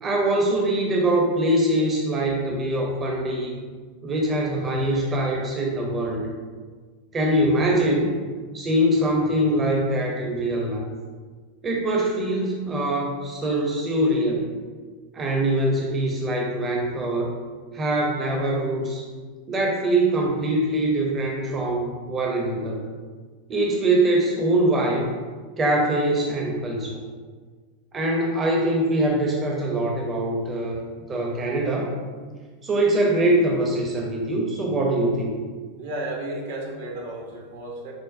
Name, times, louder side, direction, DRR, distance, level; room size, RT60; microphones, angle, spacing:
voice 1, 0.0-3.5 4.0-6.3 7.1-8.2 8.5-10.8 11.6-14.5 15.1-17.3 17.7-19.0 19.5-22.8 23.5-25.0 25.6-27.0 27.9-30.8 31.1-31.9 32.6-35.3, right 1 dB, 25° right, -1 dB, 0.6 m, -23 dB
voice 2, 35.8-37.9, right 1 dB, 60° right, 0 dB, 0.7 m, -33 dB
6.3 x 2.1 x 2.5 m, 1.5 s
figure-of-eight pair, 85°, 0 cm